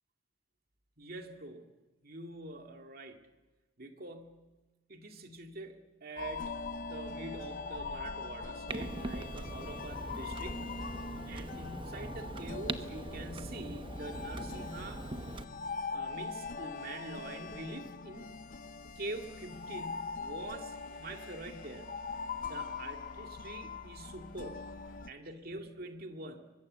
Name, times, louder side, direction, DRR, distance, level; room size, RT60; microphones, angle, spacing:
voice 1, 1.0-1.7 2.0-3.2 3.8-4.5 4.9-10.9 11.3-15.1 15.9-18.3 19.0-21.9 22.5-24.7 25.1-26.5, right 2 dB, 50° right, 4 dB, 2.1 m, -45 dB
sound 1, 6.2-25.1, left 4 dB, 45° left, 0.7 m, -42 dB
Clock, 8.7-15.4, right 2 dB, 25° right, 0.9 m, -41 dB
sound 2, 19.2-25.0, left 2 dB, 70° left, 6.0 m, -62 dB
23.5 x 21.5 x 7.6 m, 1.2 s
head